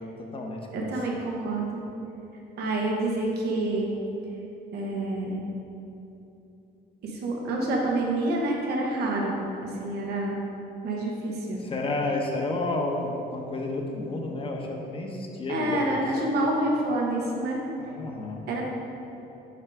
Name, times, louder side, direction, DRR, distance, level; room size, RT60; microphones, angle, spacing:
voice 1, 0.0-0.9 11.7-16.0 17.8-18.5, left 2 dB, 30° left, 1 dB, 0.9 m, -31 dB
voice 2, 0.7-1.8 2.6-3.9 4.7-5.4 7.0-10.4 10.8-11.6 15.5-17.6 18.5-18.6, right 2 dB, 70° right, -1 dB, 1.3 m, -28 dB
5.7 x 4.7 x 4.8 m, 2.9 s
cardioid pair, 110°, 17 cm